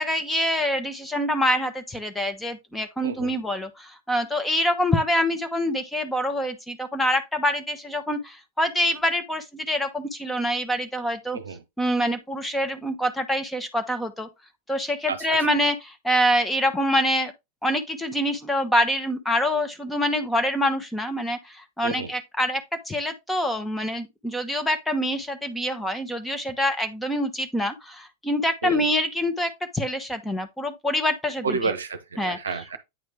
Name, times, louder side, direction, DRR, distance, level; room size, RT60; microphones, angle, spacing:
voice 1, 0.0-11.4 11.8-14.3 14.7-17.3 17.6-31.6 32.2-32.4, equal, 5° left, 0.9 m, -25 dB
voice 2, 3.0-3.4 11.3-11.6 15.1-15.4 21.8-22.1 28.6-28.9 31.4-32.8, right 4 dB, 70° right, 0.7 m, -30 dB
9.1 x 3.1 x 3.4 m
figure-of-eight pair, 90°, 0 cm